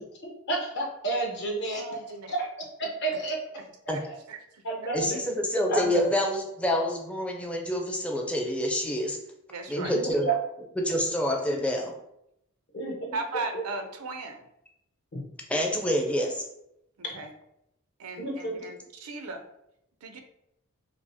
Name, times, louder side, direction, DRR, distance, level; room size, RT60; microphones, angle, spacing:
voice 1, 0.2-1.8 2.4-2.5 2.8-3.4 4.0-4.1 4.6-5.2 5.7-6.1 9.8-9.9 10.2-10.4 11.5-11.6 12.7-13.2 15.1-15.2 17.1-17.2 18.2-18.6, right 3 dB, 50° left, -1 dB, 0.9 m, -30 dB
voice 2, 1.7-2.4 3.1-3.2 3.9-4.0 4.3-4.4 9.5-9.9 13.1-14.5 17.1-17.3 18.0-19.4 20.0-20.2, right 3 dB, 85° right, 7 dB, 0.5 m, -37 dB
voice 3, 4.9-9.2 9.7-10.3 10.8-11.9 15.5-16.4, left 1 dB, 5° left, 0 dB, 0.4 m, -27 dB
4.9 x 2.0 x 2.7 m, 0.78 s
head